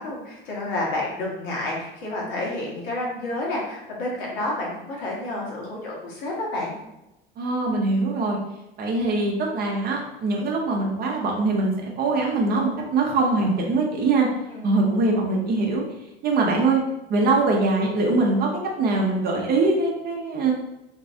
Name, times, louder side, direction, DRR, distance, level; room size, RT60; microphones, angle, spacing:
voice 1, 0.0-6.7 14.5-14.7, left 2 dB, 55° left, -3 dB, 1.1 m, -30 dB
voice 2, 7.4-8.4 8.8-14.3 14.6-15.8 16.2-16.8 17.1-18.5 18.8-20.5, right 3 dB, 30° right, -1 dB, 0.6 m, -22 dB
3.0 x 2.6 x 2.6 m, 0.92 s
figure-of-eight pair, 70°, 30 cm